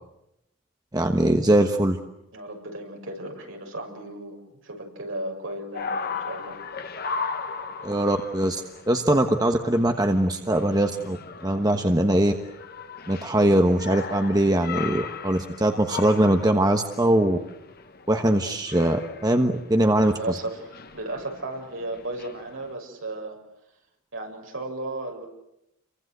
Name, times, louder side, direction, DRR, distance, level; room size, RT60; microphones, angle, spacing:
voice 1, 0.9-2.0 7.8-11.2 11.4-12.3 13.1-17.4 18.1-20.1, right 1 dB, 20° right, 5 dB, 1.2 m, -21 dB
voice 2, 2.3-6.6 20.0-23.4 24.1-25.3, right 2 dB, 60° right, 2 dB, 6.8 m, -35 dB
sound 1, 5.7-22.7, left 5 dB, 45° left, 1.4 m, -38 dB
29.0 x 24.0 x 8.0 m, 0.84 s
head